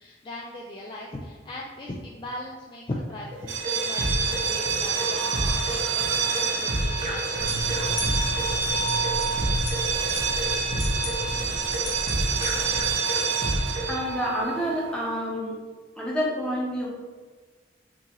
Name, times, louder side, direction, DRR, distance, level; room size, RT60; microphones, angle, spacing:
voice 1, 0.0-8.0, left 1 dB, 25° left, -3 dB, 0.4 m, -39 dB
sound 1, 3.3-13.9, right 1 dB, 35° right, 0.9 m, -30 dB
sound 2, 3.4-15.1, right 5 dB, 70° right, 0.5 m, -28 dB
sound 3, 7.4-12.9, left 1 dB, 80° left, 1.2 m, -34 dB
voice 2, 13.9-15.6 16.0-16.9, equal, 5° left, -5 dB, 0.9 m, -28 dB
5.9 x 2.8 x 3.0 m, 1.4 s
head